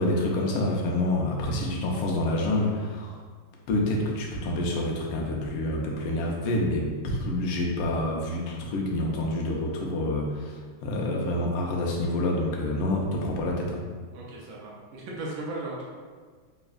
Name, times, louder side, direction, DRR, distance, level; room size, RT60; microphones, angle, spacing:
voice 1, 0.0-3.2 3.7-13.8, left 1 dB, 85° left, -1 dB, 1.5 m, -27 dB
voice 2, 14.1-15.8, right 2 dB, 75° right, -4 dB, 1.4 m, -36 dB
4.0 x 3.4 x 2.4 m, 1.6 s
omnidirectional pair, 2.3 m